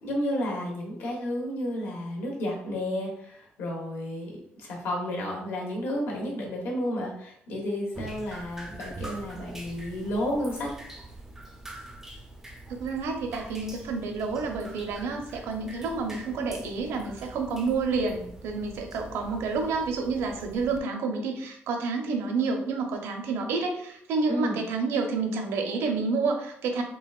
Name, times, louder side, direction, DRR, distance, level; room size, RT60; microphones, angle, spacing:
voice 1, 0.0-4.3 4.6-10.7 24.3-24.6, left 1 dB, 65° left, -1 dB, 1.2 m, -31 dB
Drip, 7.9-20.8, right 1 dB, 10° right, 0.4 m, -44 dB
voice 2, 12.7-26.8, right 4 dB, 85° right, 3 dB, 0.7 m, -29 dB
3.9 x 3.3 x 2.4 m, 0.69 s
cardioid pair, 170°, 4 cm